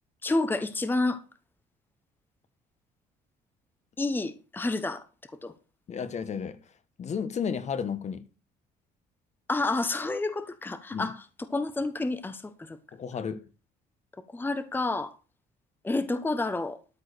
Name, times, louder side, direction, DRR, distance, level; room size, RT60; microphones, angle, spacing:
voice 1, 0.2-1.2 4.0-5.0 5.4-5.5 9.5-12.8 14.3-15.1 15.8-16.8, left 2 dB, 10° left, 0.9 m, -29 dB
voice 2, 5.9-6.6 7.0-8.2 10.9-11.1 12.9-13.4, left 6 dB, 40° left, 1.2 m, -32 dB
13.0 x 4.8 x 6.6 m
cardioid pair, 110°, 17 cm